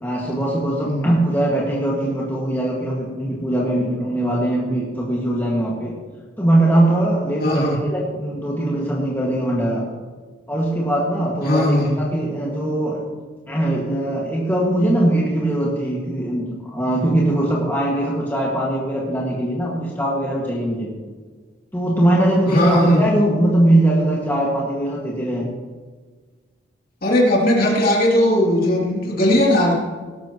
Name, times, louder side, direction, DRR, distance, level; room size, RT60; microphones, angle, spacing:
voice 1, 0.0-5.9 6.4-9.9 10.5-13.0 13.5-20.9 21.7-25.5, right 1 dB, 10° left, -5 dB, 1.9 m, -21 dB
voice 2, 7.4-7.8 11.4-12.0 22.4-23.0 27.0-29.7, left 1 dB, 45° left, -3 dB, 3.1 m, -18 dB
18.0 x 13.0 x 3.1 m, 1.5 s
head